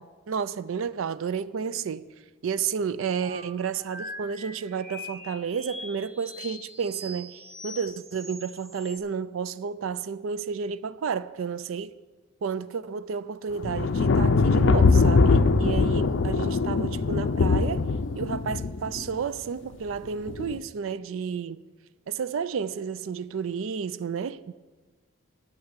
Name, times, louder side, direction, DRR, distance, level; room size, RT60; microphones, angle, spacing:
voice 1, 0.0-2.1 2.4-12.0 12.4-17.9 18.1-21.6 22.1-24.5, right 6 dB, 75° right, 0.4 m, -31 dB
sound 1, 3.2-9.0, left 1 dB, 30° right, 1.3 m, -42 dB
sound 2, 13.6-19.1 20.3-20.6, left 4 dB, 60° left, 0.5 m, -22 dB
9.0 x 6.7 x 8.0 m
head